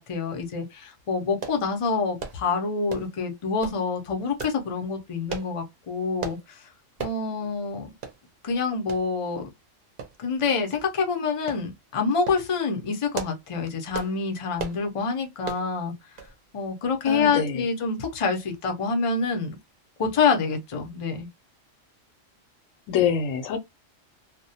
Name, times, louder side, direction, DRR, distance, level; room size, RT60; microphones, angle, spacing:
voice 1, 0.0-6.7 7.0-7.9 8.4-9.5 10.2-15.9 16.5-19.6 20.0-21.3, left 5 dB, 40° left, 0.5 m, -27 dB
sound 1, 1.4-1.6 2.2-2.4 2.9-3.2 3.6-3.8 4.4-4.6 5.3-5.5 6.2-6.4 7.0-7.2 7.6-7.7 8.0-8.2 8.9-9.0 10.0-10.4 10.7-10.9 11.5-11.6 12.1-12.4 12.9-13.5 13.9-14.2 14.6-14.8 15.4-15.7 16.2-16.4 16.6-16.7, right 6 dB, 55° right, 0.6 m, -35 dB
voice 2, 17.1-17.7 22.9-23.6, left 7 dB, 90° left, 1.0 m, -25 dB
2.2 x 2.1 x 2.6 m
omnidirectional pair, 1.3 m